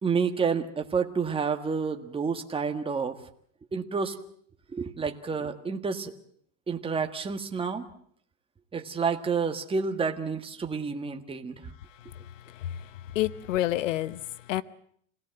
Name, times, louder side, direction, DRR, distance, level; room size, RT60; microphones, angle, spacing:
voice 1, 0.0-3.2 3.7-4.2 4.7-6.1 6.7-7.8 8.7-11.7, right 5 dB, 15° right, 1.7 m, -29 dB
voice 2, 11.8-14.6, left 14 dB, 85° left, 1.0 m, -31 dB
26.5 x 18.0 x 7.8 m
supercardioid pair, 120°, 37 cm